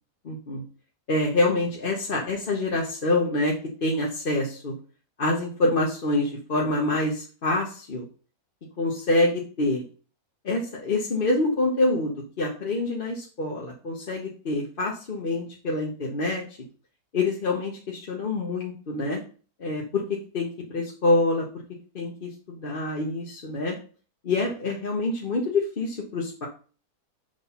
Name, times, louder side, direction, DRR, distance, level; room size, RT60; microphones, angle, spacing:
voice 1, 0.2-0.6 1.1-4.7 5.2-8.0 8.8-9.8 10.4-16.4 17.1-19.2 19.6-21.5 21.9-23.7 24.2-26.5, left 2 dB, 40° left, -1 dB, 1.1 m, -26 dB
6.7 x 3.8 x 5.5 m, 0.38 s
omnidirectional pair, 1.6 m